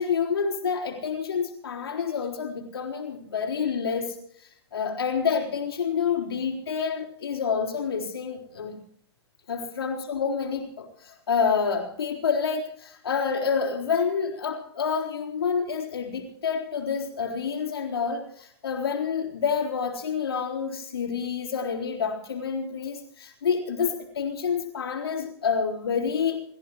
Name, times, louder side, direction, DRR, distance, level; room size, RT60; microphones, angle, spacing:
voice 1, 0.0-8.8 9.5-26.4, left 6 dB, 65° left, -1 dB, 3.8 m, -28 dB
29.5 x 15.0 x 3.1 m, 0.64 s
figure-of-eight pair, 105°, 14 cm